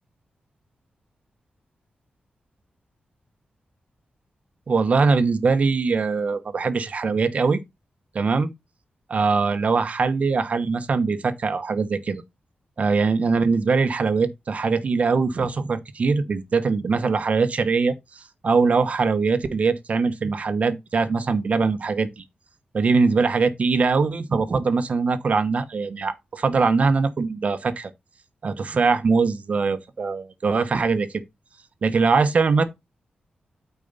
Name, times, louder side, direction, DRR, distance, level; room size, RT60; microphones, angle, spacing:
voice 1, 4.7-7.6 8.1-8.5 9.1-12.2 12.8-22.2 22.7-27.9 28.4-31.1 31.8-32.6, right 4 dB, 50° right, 1.0 m, -22 dB
8.8 x 4.5 x 4.1 m
wide cardioid pair, 140°, 3 cm